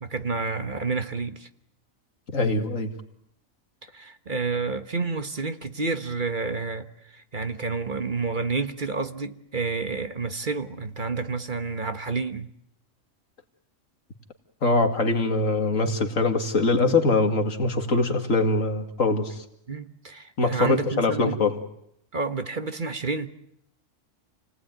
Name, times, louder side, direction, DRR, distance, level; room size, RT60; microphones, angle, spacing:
voice 1, 0.0-1.5 3.8-12.5 19.7-21.4 22.1-23.3, right 4 dB, 40° right, 1.4 m, -30 dB
voice 2, 2.3-2.9 14.6-19.4 20.4-21.6, left 3 dB, 75° left, 2.7 m, -23 dB
29.5 x 19.0 x 9.3 m
omnidirectional pair, 1.4 m